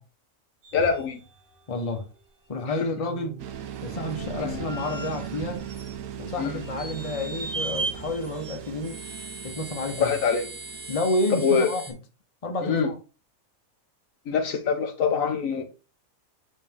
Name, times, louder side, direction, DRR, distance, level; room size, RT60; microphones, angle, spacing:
sound 1, 0.6-1.5 2.0-2.1 2.5-6.2 6.6-11.9, right 2 dB, 55° right, 1.8 m, -38 dB
voice 1, 0.7-1.2 2.7-2.9 4.4-4.6 6.4-6.6 10.0-10.4 11.4-11.7 12.6-12.9 14.3-15.6, left 6 dB, 70° left, 1.2 m, -24 dB
voice 2, 1.7-2.1 2.5-3.4 3.8-5.6 6.2-9.0 9.4-10.1 10.9-11.8 12.4-12.9, left 1 dB, 25° left, 1.0 m, -30 dB
sound 2, 3.4-11.0, right 9 dB, 80° right, 1.1 m, -38 dB
8.3 x 3.3 x 3.6 m
omnidirectional pair, 1.5 m